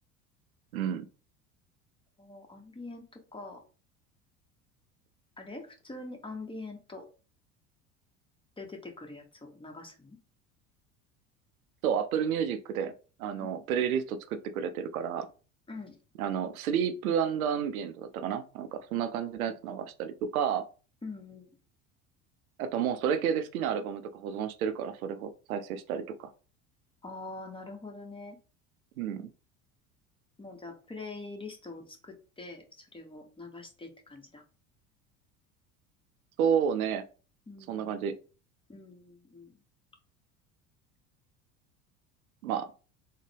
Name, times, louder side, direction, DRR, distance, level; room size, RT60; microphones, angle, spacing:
voice 1, 0.7-1.1 11.8-12.9 13.2-15.3 16.2-20.6 22.6-26.3 29.0-29.3 36.4-37.0 37.7-38.2 42.4-42.7, right 8 dB, 80° right, 10 dB, 0.6 m, -31 dB
voice 2, 2.2-3.6 5.4-7.1 8.6-10.2 13.4-13.6 15.7-16.0 19.5-19.6 21.0-21.5 27.0-28.4 30.4-34.4 37.5-38.0 38.7-39.6, left 3 dB, 10° left, 3 dB, 0.9 m, -44 dB
3.8 x 2.1 x 3.2 m, 0.35 s
hypercardioid pair, 75°, 42 cm